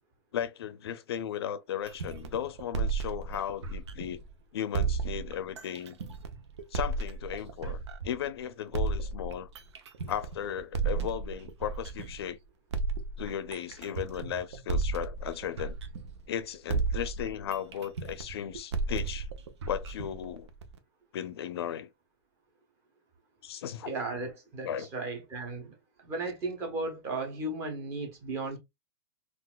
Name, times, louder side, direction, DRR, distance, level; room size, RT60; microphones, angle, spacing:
voice 1, 0.3-4.2 4.5-6.0 6.7-7.8 8.0-9.5 10.1-12.4 13.2-15.8 16.3-19.3 19.7-20.5 21.1-21.9 23.4-23.9 24.6-24.9, left 9 dB, 65° left, 0.5 m, -36 dB
sound 1, 1.9-4.3 4.7-8.3 8.7-12.3 12.7-16.4 16.7-20.8, right 4 dB, 85° right, 0.7 m, -33 dB
voice 2, 23.8-28.6, right 2 dB, 20° right, 0.8 m, -35 dB
3.9 x 2.4 x 2.3 m
supercardioid pair, 175°, 14 cm